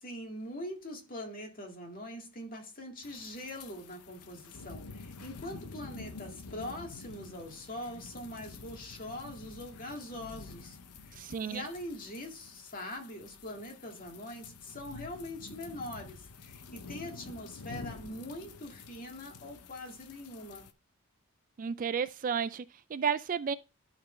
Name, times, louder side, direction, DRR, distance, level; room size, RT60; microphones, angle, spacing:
voice 1, 0.0-10.8 11.0-20.7, left 1 dB, 40° left, 2.0 m, -43 dB
sound 1, 3.0-20.7, left 4 dB, 90° left, 0.8 m, -49 dB
voice 2, 11.2-11.7 21.6-23.5, right 7 dB, 35° right, 0.3 m, -32 dB
12.0 x 4.2 x 3.2 m
head